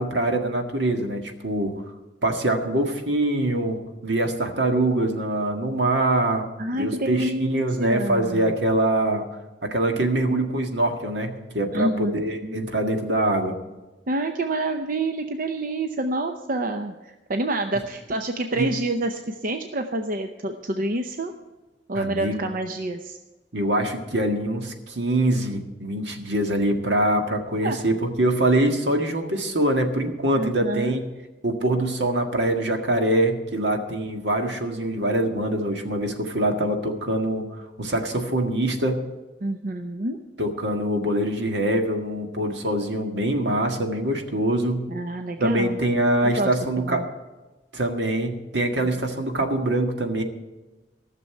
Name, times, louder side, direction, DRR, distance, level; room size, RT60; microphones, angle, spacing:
voice 1, 0.0-1.8 2.2-6.4 6.7-9.3 9.6-13.5 18.6-18.7 21.9-22.5 23.5-31.1 31.4-39.0 40.4-44.8 45.4-47.0 47.7-50.2, right 1 dB, 75° right, 4 dB, 1.8 m, -24 dB
voice 2, 6.6-8.5 11.7-12.6 14.1-21.3 21.9-23.2 27.6-27.8 30.3-31.0 39.4-40.2 44.9-45.8 46.2-46.5 46.9-47.1, right 2 dB, 50° right, 6 dB, 0.7 m, -28 dB
15.0 x 6.8 x 8.8 m, 1.1 s
head